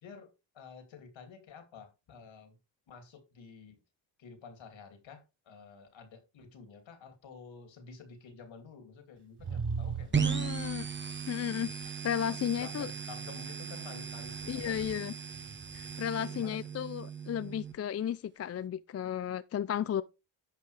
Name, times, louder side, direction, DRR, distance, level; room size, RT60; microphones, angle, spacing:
voice 1, 0.0-2.6 2.9-3.8 4.2-10.6 11.8-11.9 12.4-15.1 16.1-16.6, left 5 dB, 65° left, 2.7 m, -51 dB
sound 1, 9.4-11.3 14.1-16.1, right 5 dB, 50° right, 5.3 m, -40 dB
sound 2, 10.1-17.7, right 6 dB, 20° right, 1.0 m, -37 dB
voice 2, 10.2-10.9 11.3-12.9 14.5-15.1 15.7-20.0, left 9 dB, 30° left, 0.4 m, -34 dB
10.5 x 5.6 x 3.3 m
cardioid pair, 75°, 49 cm